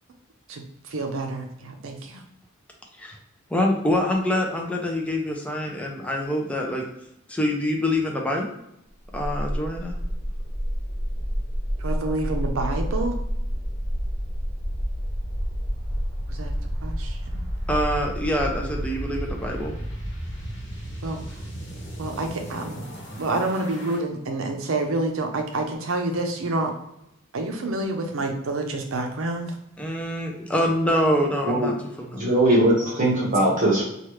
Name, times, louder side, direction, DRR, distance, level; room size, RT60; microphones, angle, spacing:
voice 1, 0.5-2.2 11.8-13.2 16.3-16.5 16.8-17.4 21.0-21.2 22.0-22.8 23.2-26.7 27.3-29.5 32.9-33.0, right 2 dB, 80° right, 4 dB, 0.5 m, -28 dB
voice 2, 3.5-6.9 7.3-8.5 9.1-9.9 17.7-19.7 29.8-31.7 32.0-32.3, left 1 dB, 5° left, 0 dB, 0.5 m, -25 dB
sound 1, 9.0-24.0, equal, 55° left, 1.0 m, -30 dB
voice 3, 32.1-33.8, right 1 dB, 40° right, -4 dB, 1.2 m, -20 dB
3.1 x 2.3 x 3.1 m, 0.82 s
head